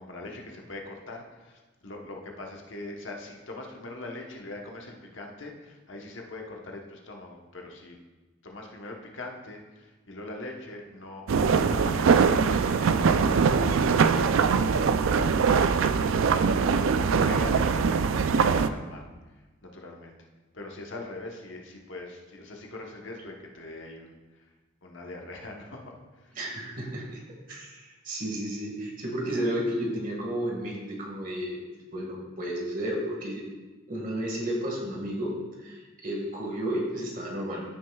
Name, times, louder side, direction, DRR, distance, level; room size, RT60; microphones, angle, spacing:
voice 1, 0.0-8.0 8.4-19.1 19.6-20.1 20.5-24.5 24.8-26.4, left 2 dB, 70° left, 1 dB, 1.1 m, -42 dB
sound 1, 11.3-18.7, right 5 dB, 75° right, 0.4 m, -22 dB
voice 2, 26.4-27.0 27.5-31.6 31.9-33.4 33.9-35.4 35.6-37.6, right 1 dB, 40° right, -2 dB, 1.8 m, -32 dB
14.5 x 6.3 x 2.3 m, 1.2 s
head